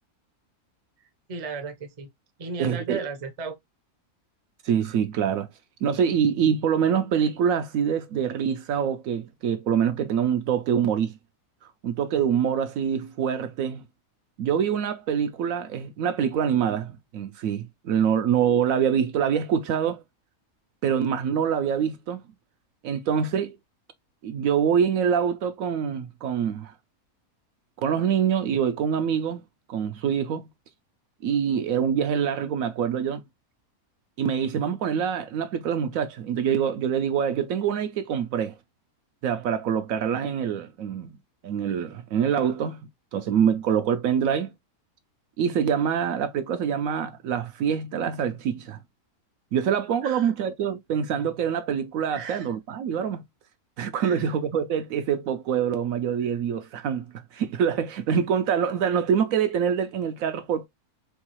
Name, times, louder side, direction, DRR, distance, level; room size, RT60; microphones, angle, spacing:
voice 1, 1.3-2.1 2.4-3.6 50.0-50.3 52.1-52.5 54.0-54.3, right 4 dB, 35° right, 0.6 m, -35 dB
voice 2, 2.6-3.0 4.6-5.5 5.8-11.2 11.8-13.8 14.4-20.0 20.8-22.2 22.8-23.6 24.2-26.7 27.8-29.4 29.7-30.5 31.2-33.2 34.2-38.6 39.2-41.1 41.4-42.8 43.1-44.5 45.4-48.8 49.5-53.2 53.8-57.0 57.3-60.7, right 8 dB, 70° right, 0.9 m, -25 dB
4.5 x 2.4 x 2.9 m
omnidirectional pair, 1.6 m